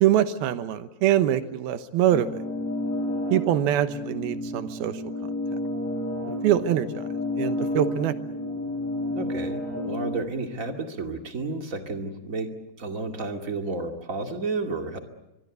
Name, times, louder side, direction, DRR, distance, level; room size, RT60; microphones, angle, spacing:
voice 1, 0.0-2.3 3.3-5.0 6.4-7.0 7.4-8.1, right 11 dB, 70° right, 11 dB, 2.8 m, -23 dB
sound 1, 2.1-10.1, left 1 dB, 40° left, 6.3 m, -31 dB
voice 2, 9.1-12.5 12.8-15.0, right 3 dB, 30° right, 4 dB, 1.7 m, -31 dB
24.0 x 24.0 x 8.2 m, 0.92 s
omnidirectional pair, 4.8 m